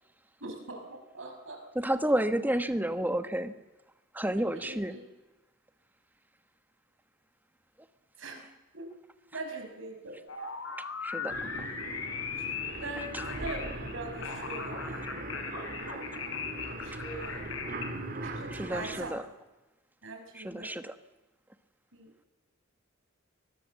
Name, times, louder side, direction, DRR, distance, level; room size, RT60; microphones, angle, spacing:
voice 1, 0.4-1.6 4.6-5.0 8.2-8.4 8.7-8.9 9.3-10.2 12.5-15.0 16.6-17.5 18.2-19.2 20.0-20.7 21.9-22.3, right 2 dB, 65° right, 4 dB, 5.6 m, -42 dB
voice 2, 1.7-3.5 4.1-5.0 11.0-11.7 16.9-17.0 18.5-19.3 20.3-20.9, right 1 dB, 10° right, 10 dB, 1.2 m, -31 dB
sound 1, 10.3-17.9, left 5 dB, 65° left, 4.0 m, -38 dB
sound 2, 11.3-19.1, right 2 dB, 45° right, 3.1 m, -40 dB
23.5 x 21.0 x 7.6 m, 1.1 s
head